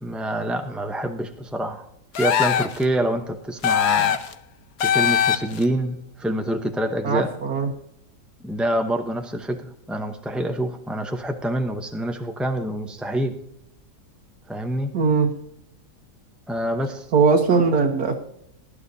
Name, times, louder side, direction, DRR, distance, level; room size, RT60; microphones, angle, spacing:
voice 1, 0.0-1.9 2.2-4.2 4.8-7.3 8.4-13.3 14.5-14.9 16.5-17.1, right 1 dB, ahead, 4 dB, 0.4 m, -26 dB
sound 1, 2.1-2.8 3.6-4.3 4.8-5.6, left 9 dB, 65° left, 1.3 m, -21 dB
voice 2, 7.0-7.7 14.9-15.3 17.1-18.1, right 5 dB, 75° right, 1 dB, 1.7 m, -19 dB
19.0 x 11.5 x 2.7 m, 0.73 s
omnidirectional pair, 1.7 m